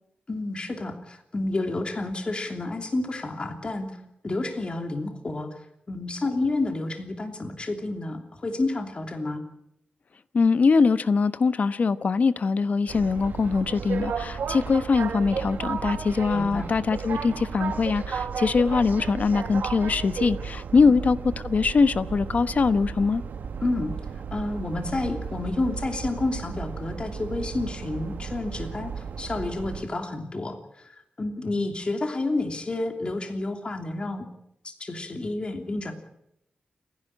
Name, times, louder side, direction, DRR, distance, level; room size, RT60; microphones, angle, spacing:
voice 1, 0.3-4.0 4.2-5.6 5.9-9.4 16.3-16.7 23.6-23.9 24.3-30.9 31.2-34.3 34.6-35.9, left 2 dB, 35° left, 3.1 m, -30 dB
voice 2, 10.3-21.2 21.4-23.2, left 4 dB, 55° left, 1.1 m, -22 dB
sound 1, 12.9-29.8, right 6 dB, 85° right, 1.6 m, -34 dB
29.0 x 11.0 x 9.0 m
cardioid pair, 80°, 3 cm